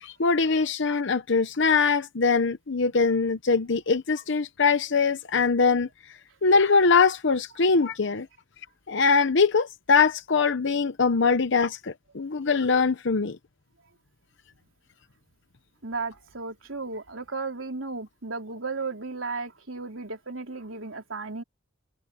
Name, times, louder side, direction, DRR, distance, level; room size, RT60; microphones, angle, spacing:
voice 1, 0.0-5.9 6.4-8.3 8.9-13.4, left 4 dB, 65° left, 0.9 m, -22 dB
voice 2, 15.8-21.4, right 3 dB, 85° right, 3.8 m, -34 dB
head